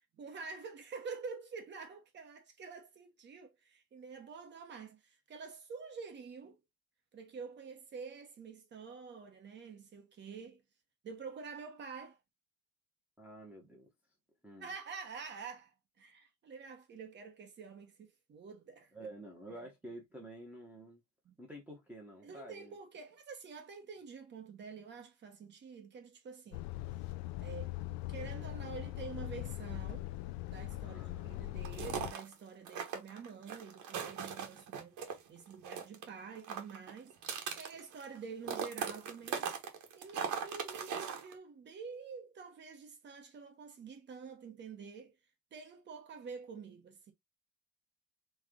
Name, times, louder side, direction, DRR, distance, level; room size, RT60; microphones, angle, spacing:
voice 1, 0.0-6.6 7.1-10.6 11.0-12.2 14.6-19.1 19.5-19.7 21.2-21.4 22.2-26.6 27.4-27.8 28.1-30.1 30.5-39.6 40.0-45.1 45.5-47.1, right 5 dB, 30° right, 1.1 m, -48 dB
voice 2, 13.2-13.9 14.4-14.7 18.9-21.0 21.4-22.8 26.5-26.6 30.7-31.5, right 1 dB, 5° right, 0.9 m, -50 dB
Truck, 26.5-32.1, left 16 dB, 65° left, 0.5 m, -41 dB
sound 1, 31.6-32.3 32.7-35.2 35.5-36.1 36.3-38.2 38.4-41.3, right 7 dB, 50° right, 1.3 m, -39 dB
3.8 x 3.3 x 3.7 m
cardioid pair, 175°, 39 cm